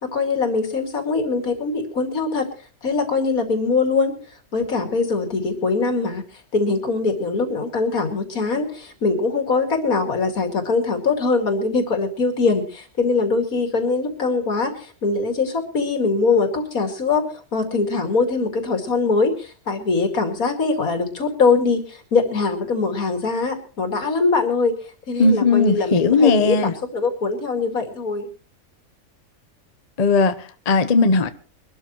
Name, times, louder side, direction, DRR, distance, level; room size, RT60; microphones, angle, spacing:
voice 1, 0.0-2.5 2.8-4.1 4.5-6.2 6.5-17.2 17.5-24.8 25.1-28.3, left 4 dB, 75° left, 2.8 m, -22 dB
voice 2, 25.2-26.7 30.0-31.3, left 3 dB, 30° left, 0.8 m, -17 dB
23.5 x 12.5 x 3.1 m
omnidirectional pair, 1.5 m